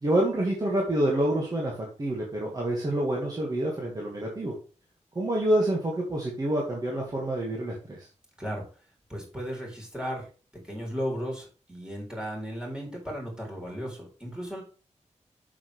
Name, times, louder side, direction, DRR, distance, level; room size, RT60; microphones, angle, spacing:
voice 1, 0.0-4.5 5.2-8.1, right 1 dB, 30° right, -2 dB, 2.0 m, -27 dB
voice 2, 9.1-10.3 10.6-14.6, equal, 5° right, -2 dB, 4.0 m, -35 dB
8.6 x 6.7 x 3.4 m, 0.36 s
wide cardioid pair, 170°, 12 cm